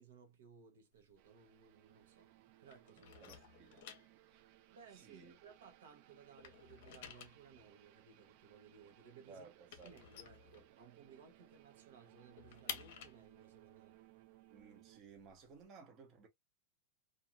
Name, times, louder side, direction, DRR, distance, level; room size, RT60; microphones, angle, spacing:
voice 1, 0.0-2.3 2.6-3.4 4.7-14.0, right 6 dB, 85° right, 0.9 m, -60 dB
sound 1, 0.9-2.4 2.6-5.9 6.2-11.2 11.5-11.6 11.9-15.6, left 9 dB, 60° left, 0.6 m, -52 dB
sound 2, 1.2-15.0, right 16 dB, 45° right, 0.3 m, -65 dB
voice 2, 3.2-3.9 4.3-4.5 4.9-5.3 9.3-9.9 14.5-16.3, right 4 dB, 30° right, 0.7 m, -58 dB
2.5 x 2.4 x 2.9 m
supercardioid pair, 155°, 0 cm